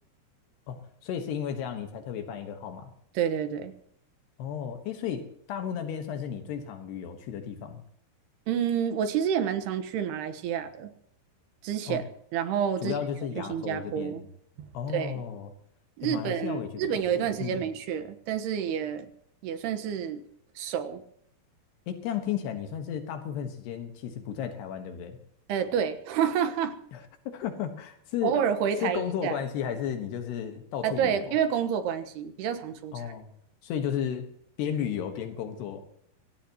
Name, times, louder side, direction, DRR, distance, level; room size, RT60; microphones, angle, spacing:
voice 1, 0.7-2.9 4.4-7.8 11.9-12.0 12.8-14.3 14.7-15.5 16.0-16.8 17.2-17.6 21.9-25.2 26.9-28.4 28.8-31.3 32.9-33.3 33.6-34.3 34.6-35.8, left 8 dB, 80° left, 6 dB, 3.5 m, -34 dB
voice 2, 3.2-3.7 8.5-10.9 11.6-12.0 12.3-12.9 13.5-14.2 14.6-14.7 14.9-15.1 16.0-19.1 19.4-20.2 20.6-21.0 25.5-26.7 28.2-29.4 30.8-33.1, right 8 dB, 75° right, 8 dB, 3.3 m, -29 dB
24.0 x 17.5 x 3.0 m, 0.69 s
omnidirectional pair, 4.7 m